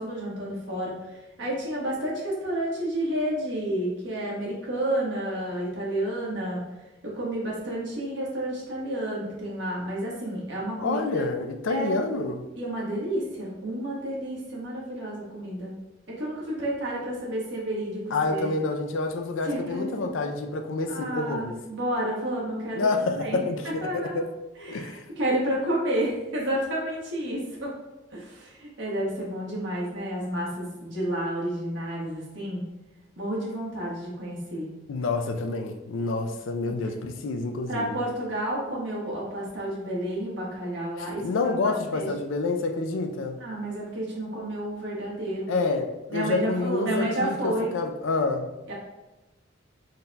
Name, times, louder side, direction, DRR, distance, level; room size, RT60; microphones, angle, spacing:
voice 1, 0.0-6.6 7.0-11.2 11.7-12.0 12.6-15.7 16.1-18.5 19.4-20.1 20.9-24.3 24.6-27.8 28.1-32.6 33.2-34.7 36.6-36.7 37.7-41.2 41.6-42.1 43.4-45.5 46.1-47.7 48.7-48.8, right 1 dB, 70° right, 1.3 m, -30 dB
voice 2, 10.8-12.5 18.1-21.5 22.7-24.3 24.6-25.1 34.9-37.9 41.0-43.4 45.5-48.5, left 3 dB, 85° left, 0.4 m, -28 dB
3.9 x 2.2 x 3.9 m
head